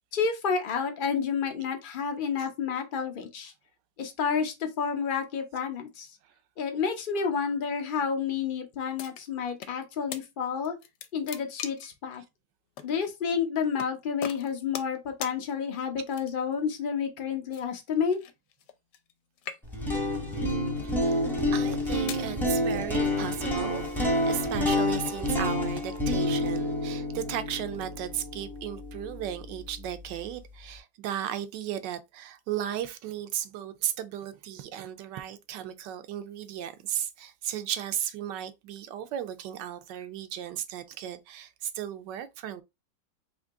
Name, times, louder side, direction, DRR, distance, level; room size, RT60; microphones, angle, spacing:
voice 1, 0.1-3.5 4.0-6.1 6.6-10.8 11.1-12.2 12.8-18.2, left 6 dB, 60° left, 0.5 m, -30 dB
sound 1, 9.0-9.8 10.1-10.2 10.7-12.0 12.8-12.9 13.8-13.9 14.2-15.0 15.2-15.4 16.1-16.5 17.5-19.1 19.4-20.0 20.7-20.9 21.6-22.3, left 9 dB, 75° left, 1.2 m, -40 dB
sound 2, 19.6-29.7, left 1 dB, ahead, 0.7 m, -28 dB
voice 2, 20.8-21.2 21.5-23.8 24.3-42.6, right 11 dB, 80° right, 1.2 m, -35 dB
3.7 x 2.9 x 3.4 m
omnidirectional pair, 1.9 m